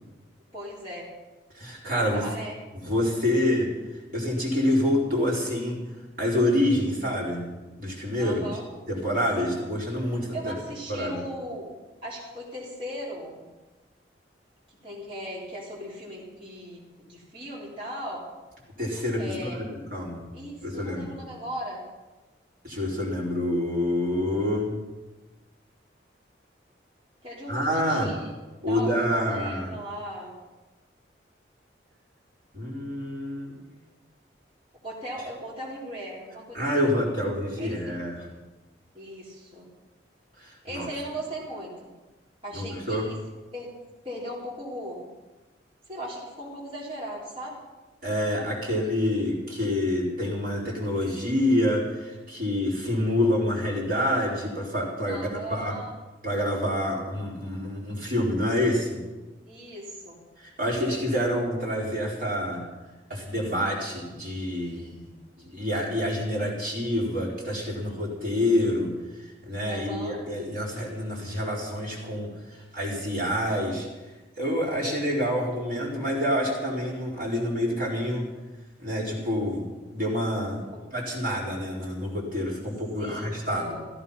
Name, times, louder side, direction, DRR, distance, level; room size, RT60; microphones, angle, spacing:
voice 1, 0.5-1.1 1.9-2.5 8.2-8.7 9.4-9.6 10.3-11.7 12.0-13.4 14.8-18.3 19.2-19.6 20.3-21.8 27.2-28.3 28.7-30.3 34.8-36.9 37.6-38.0 38.9-39.7 40.6-41.9 42.4-43.2 43.5-43.7 44.0-45.1 45.9-47.6 55.1-55.9 59.5-60.2 69.7-70.3 80.7-80.9 83.0-83.8, equal, 30° right, -7 dB, 3.9 m, -38 dB
voice 2, 1.5-2.2 2.7-3.7 4.1-5.8 6.2-8.5 8.9-10.5 10.9-11.2 18.8-19.6 19.9-20.3 20.6-21.1 22.6-24.7 27.5-28.1 28.6-29.7 32.5-33.6 36.5-38.3 40.4-40.9 42.5-43.1 48.0-55.8 56.2-59.0 60.4-62.6 63.1-65.0 65.4-68.9 69.4-73.9 74.4-78.3 78.8-80.6 80.9-83.8, left 1 dB, 45° right, -4 dB, 4.5 m, -27 dB
15.5 x 15.5 x 5.7 m, 1.2 s
head